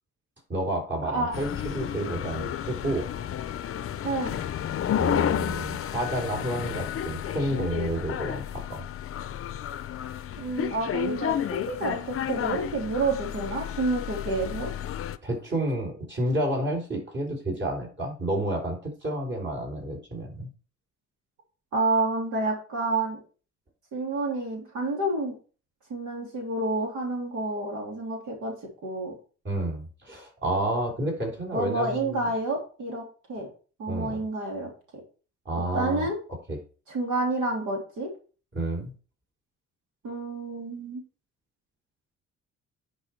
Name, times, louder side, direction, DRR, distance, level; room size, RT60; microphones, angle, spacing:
voice 1, 0.5-3.1 5.0-8.8 15.2-20.5 29.4-32.2 33.9-34.2 35.5-36.1 36.5-36.6 38.5-38.9, right 1 dB, 40° right, 0 dB, 3.7 m, -30 dB
sound 1, 1.3-15.2, left 10 dB, 45° left, 0.6 m, -31 dB
voice 2, 10.4-14.7 21.7-23.2 23.9-25.4 25.9-28.5 28.8-29.1 31.5-33.5 33.8-34.7 35.7-36.2 36.9-38.1 40.0-41.0, right 2 dB, 80° right, -1 dB, 3.1 m, -29 dB
10.0 x 4.9 x 4.5 m, 0.37 s
cardioid pair, 90°, 30 cm